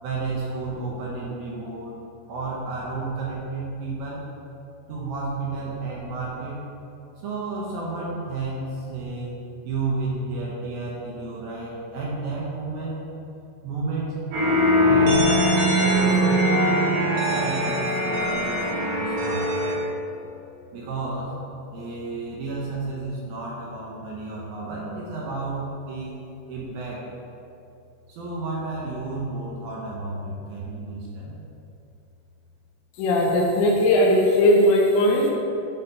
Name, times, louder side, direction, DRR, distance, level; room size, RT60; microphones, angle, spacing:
voice 1, 0.0-2.0 2.3-4.2 4.9-6.6 7.2-9.3 9.6-13.0 13.6-14.1 14.8-16.9 17.3-19.5 20.7-21.4 21.7-26.1 26.5-27.1 28.1-31.4, right 3 dB, 70° right, -5 dB, 2.5 m, -31 dB
sound 1, 14.3-19.8, equal, 90° right, 4.7 m, -21 dB
voice 2, 33.0-35.3, left 1 dB, 80° left, -2 dB, 3.3 m, -18 dB
11.0 x 4.1 x 5.6 m, 2.7 s
omnidirectional pair, 5.2 m